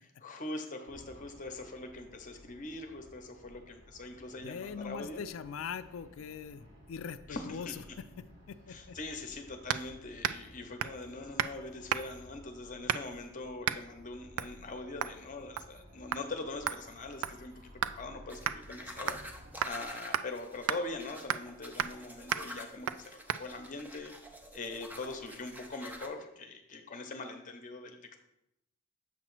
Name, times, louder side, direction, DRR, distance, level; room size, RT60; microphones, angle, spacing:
voice 1, 0.0-5.2 7.3-7.7 8.7-19.2 19.6-24.1 24.5-28.0, left 2 dB, 40° left, 6 dB, 0.8 m, -42 dB
sound 1, 0.9-19.5, equal, 55° right, 1.3 m, -56 dB
voice 2, 4.4-7.7 8.0-9.0, left 6 dB, 75° left, 12 dB, 0.4 m, -42 dB
sound 2, 9.7-9.9 10.2-10.5 10.8-11.0 11.4-11.6 11.9-12.2 12.9-13.2 13.6-13.8 14.4-14.6 15.0-15.2 15.6-15.8 16.1-16.2 16.7-18.0 18.5-18.6 19.1-19.3 19.6-19.8 20.1-20.3 20.7-20.8 21.3-21.5 21.8-22.0 22.3-22.5 22.9-23.0 23.3-23.4, right 10 dB, 90° right, 0.3 m, -34 dB
sound 3, 18.3-26.1, equal, 10° right, 0.5 m, -48 dB
7.3 x 3.0 x 6.0 m, 0.84 s
head